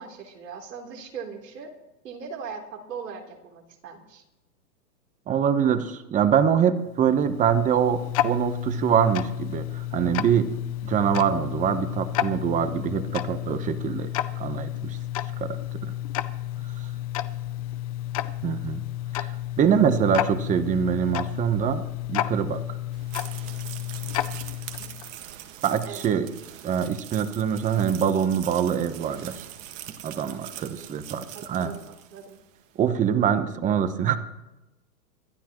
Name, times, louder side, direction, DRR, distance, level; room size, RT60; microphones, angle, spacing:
voice 1, 0.0-1.7 2.0-4.2 24.8-24.9 25.8-26.0 30.6-30.9 31.3-32.4, right 6 dB, 75° right, 2 dB, 3.7 m, -40 dB
voice 2, 5.3-10.5 10.8-15.0 15.4-15.9 16.8-16.9 18.4-18.8 19.1-21.8 22.1-22.8 25.6-26.3 26.6-29.5 30.0-31.7 32.8-34.2, right 8 dB, 15° right, 12 dB, 0.9 m, -24 dB
Tick-tock, 6.9-25.2, left 13 dB, 25° left, 0.4 m, -31 dB
sound 1, 22.9-32.5, right 12 dB, 55° right, 1.7 m, -42 dB
26.0 x 11.5 x 3.1 m, 1.0 s
hypercardioid pair, 130°, 48 cm